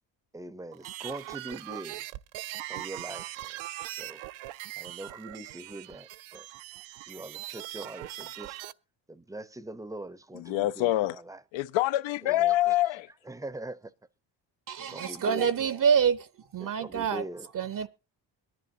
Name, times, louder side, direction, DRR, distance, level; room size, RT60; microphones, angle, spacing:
voice 1, 0.3-2.0 2.7-3.6 3.9-4.2 4.8-6.5 7.1-8.6 9.1-11.4 12.2-12.8 13.3-13.9 14.8-15.5 16.6-17.5, right 2 dB, 5° right, 0.6 m, -42 dB
sound 1, 0.7-8.7, right 15 dB, 85° right, 0.6 m, -41 dB
voice 2, 10.3-11.2 11.5-13.1, left 15 dB, 75° left, 0.7 m, -26 dB
voice 3, 14.7-16.3 16.5-17.2 17.5-17.9, right 7 dB, 45° right, 0.7 m, -26 dB
22.5 x 11.0 x 2.7 m
cardioid pair, 95°, 46 cm